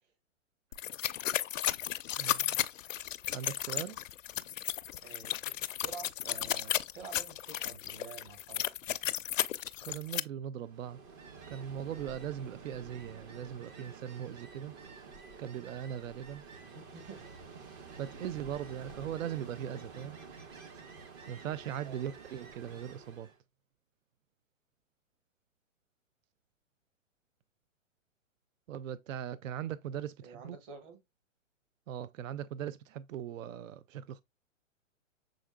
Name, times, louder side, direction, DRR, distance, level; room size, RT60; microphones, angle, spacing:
sound 1, 0.7-10.2, left 12 dB, 75° left, 0.5 m, -34 dB
voice 1, 2.2-2.6 3.3-4.0 9.8-11.0 11.5-14.8 15.4-16.5 18.0-20.2 21.3-23.3 28.7-30.6 31.9-34.2, right 10 dB, 80° right, 0.5 m, -40 dB
voice 2, 5.0-5.5 5.8-8.7 16.6-17.2 21.8-22.1 30.2-31.0, right 5 dB, 45° right, 1.9 m, -48 dB
Ocean, 10.6-23.4, right 5 dB, 20° right, 0.4 m, -50 dB
6.2 x 3.8 x 2.2 m
hypercardioid pair, 130°, 39 cm